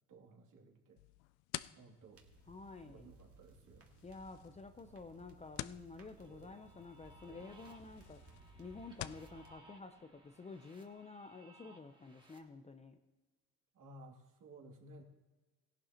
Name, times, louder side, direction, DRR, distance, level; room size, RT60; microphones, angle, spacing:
voice 1, 0.1-1.0 1.8-2.2 2.8-3.9 6.2-6.6 7.2-7.6 13.7-15.0, right 2 dB, 55° right, 0 dB, 2.7 m, -58 dB
sound 1, 1.0-9.3, left 16 dB, 80° left, 0.5 m, -51 dB
sound 2, 2.1-9.5, right 2 dB, 40° right, 2.0 m, -61 dB
voice 2, 2.5-3.1 4.0-8.2 8.6-13.0, left 3 dB, 20° left, 7 dB, 0.6 m, -51 dB
sound 3, 6.2-12.4, right 1 dB, 10° right, 1.7 m, -63 dB
17.0 x 11.5 x 3.0 m, 1.3 s
cardioid pair, 100°, 38 cm